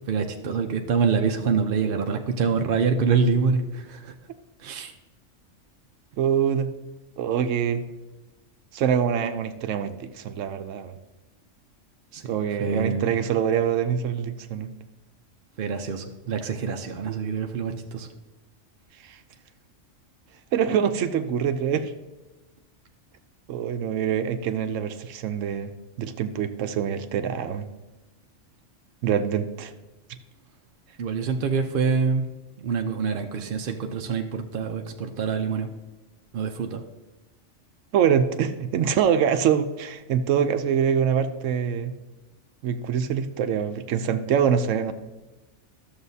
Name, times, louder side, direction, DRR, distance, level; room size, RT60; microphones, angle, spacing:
voice 1, 0.1-4.1 4.6-4.9 12.1-12.2 12.6-13.1 15.6-18.1 31.0-32.2 32.6-35.7 36.3-36.8, right 5 dB, 55° right, 4 dB, 0.7 m, -25 dB
voice 2, 6.2-6.7 7.2-7.8 8.7-10.9 12.3-14.7 19.0-19.2 20.5-21.9 23.5-25.7 26.0-27.7 29.0-29.7 37.9-41.9 42.6-44.9, right 8 dB, 80° right, 9 dB, 0.9 m, -24 dB
13.0 x 7.0 x 2.7 m, 1.1 s
omnidirectional pair, 1.3 m